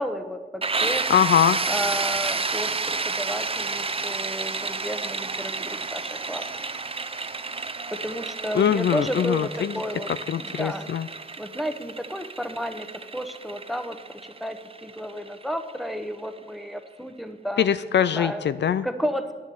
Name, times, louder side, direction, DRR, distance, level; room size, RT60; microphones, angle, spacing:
voice 1, 0.0-1.0 1.7-6.5 7.9-10.1 10.4-10.9 11.4-12.9 13.1-17.7 18.1-18.4 18.8-19.3, equal, ahead, 9 dB, 1.0 m, -32 dB
sound 1, 0.6-16.2, right 4 dB, 30° right, 0.7 m, -31 dB
voice 2, 1.1-1.6 8.5-9.7 10.3-11.1 17.6-18.8, left 9 dB, 65° left, 14 dB, 0.4 m, -22 dB
10.5 x 7.2 x 7.8 m, 1.4 s
cardioid pair, 60°, 20 cm